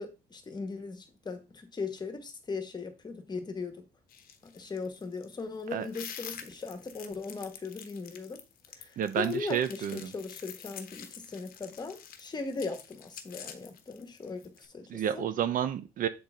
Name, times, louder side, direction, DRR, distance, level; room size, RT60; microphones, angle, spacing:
voice 1, 0.0-3.8 4.4-8.4 8.7-15.2, left 4 dB, 25° left, 1.4 m, -39 dB
sound 1, 4.1-14.7, left 8 dB, 60° left, 1.0 m, -47 dB
voice 2, 9.0-10.1 14.9-16.1, right 9 dB, 55° right, 0.7 m, -30 dB
7.8 x 4.0 x 3.6 m
cardioid pair, 110°, 17 cm